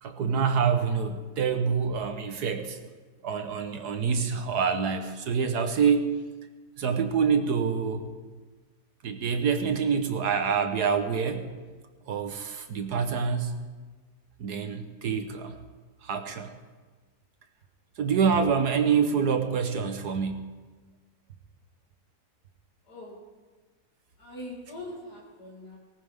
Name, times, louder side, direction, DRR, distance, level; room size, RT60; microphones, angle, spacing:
voice 1, 0.0-2.8 3.2-6.1 6.8-8.1 9.0-11.5 12.1-13.6 14.4-15.6 16.0-16.5 18.0-20.5, right 6 dB, 85° right, 7 dB, 1.7 m, -26 dB
voice 2, 24.2-25.8, left 1 dB, 85° left, -5 dB, 3.1 m, -42 dB
19.0 x 18.5 x 3.7 m, 1.4 s
omnidirectional pair, 1.7 m